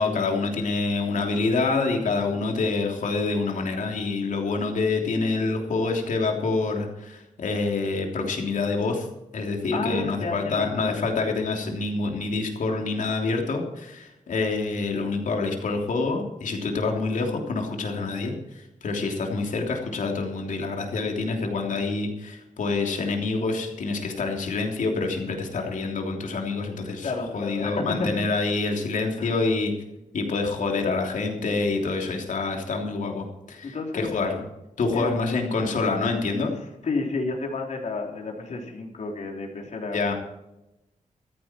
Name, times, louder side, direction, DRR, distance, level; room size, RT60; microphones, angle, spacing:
voice 1, 0.0-9.1 9.3-29.7 30.1-34.4 34.8-36.6 39.9-40.1, left 3 dB, 80° left, 2 dB, 3.2 m, -27 dB
voice 2, 9.7-10.6 27.0-28.1 29.2-29.3 33.6-34.1 34.9-35.2 36.8-40.1, left 3 dB, 65° left, 1 dB, 3.5 m, -31 dB
15.0 x 14.0 x 4.5 m, 0.92 s
wide cardioid pair, 155°, 13 cm